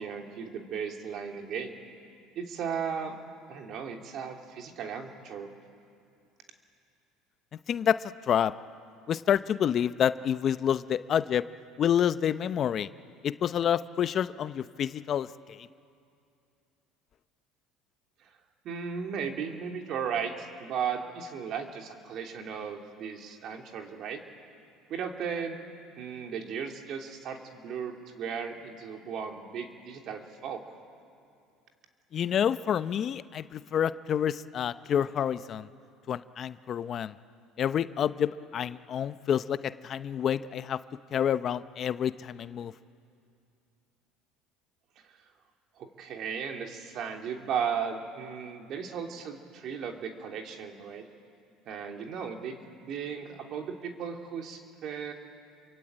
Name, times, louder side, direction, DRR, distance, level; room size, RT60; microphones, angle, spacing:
voice 1, 0.0-1.8 2.3-3.2 3.5-5.5 18.2-18.3 18.6-24.2 24.9-25.6 26.0-30.6 45.0-45.1 45.8-51.0 51.7-55.1, right 7 dB, 55° right, 3 dB, 3.1 m, -36 dB
voice 2, 7.7-8.5 9.1-11.4 11.8-12.9 13.2-15.6 32.1-35.7 36.1-37.1 37.6-40.8 41.1-42.7, left 9 dB, 45° left, 13 dB, 0.7 m, -28 dB
28.0 x 23.0 x 8.9 m, 2.5 s
supercardioid pair, 105°, 0 cm